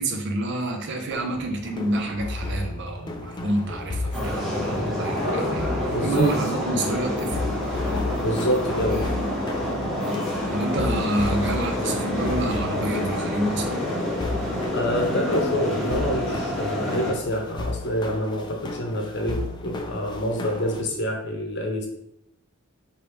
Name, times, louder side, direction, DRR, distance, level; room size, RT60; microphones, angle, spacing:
voice 1, 0.0-5.7 6.0-7.6 10.5-13.9, right 2 dB, 55° right, 4 dB, 0.6 m, -28 dB
sound 1, 1.1-20.8, left 2 dB, 20° left, 0.4 m, -34 dB
sound 2, 4.1-17.1, left 1 dB, ahead, 1.1 m, -28 dB
voice 2, 5.2-6.3 8.2-9.0 14.7-21.9, equal, 50° left, 2 dB, 0.8 m, -27 dB
3.3 x 2.7 x 4.5 m, 0.76 s
head